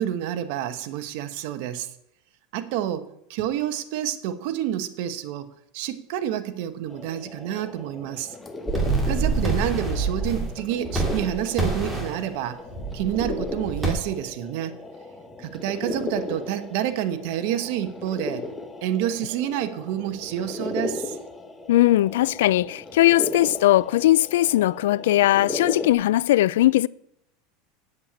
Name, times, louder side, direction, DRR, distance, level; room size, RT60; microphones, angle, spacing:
voice 1, 0.0-1.9 2.5-8.3 9.1-12.6 12.9-14.8 15.4-18.4 18.8-21.2, right 11 dB, 60° right, 1.0 m, -28 dB
sound 1, 6.9-25.9, left 2 dB, 10° left, 1.1 m, -36 dB
sound 2, 8.7-10.5 10.9-12.2 12.7-13.9, right 3 dB, 5° right, 2.4 m, -26 dB
voice 2, 21.7-26.9, left 15 dB, 90° left, 0.3 m, -19 dB
8.0 x 7.5 x 8.6 m
supercardioid pair, 150°, 0 cm